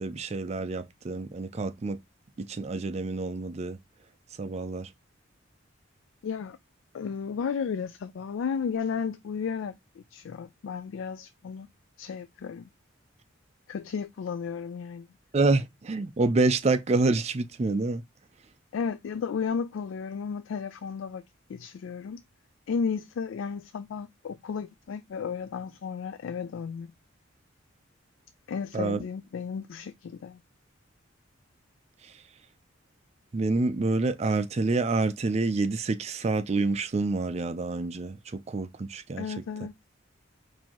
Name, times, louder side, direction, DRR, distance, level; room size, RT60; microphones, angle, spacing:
voice 1, 0.0-2.0 2.4-3.8 4.4-4.9 15.3-18.0 28.7-29.0 33.3-39.3, right 3 dB, 30° right, 0.4 m, -27 dB
voice 2, 6.2-6.6 6.9-11.7 12.0-12.7 13.7-15.1 18.7-21.2 21.5-22.2 22.7-26.9 28.5-30.4 39.2-39.7, left 6 dB, 70° left, 0.3 m, -33 dB
4.4 x 2.7 x 2.8 m
head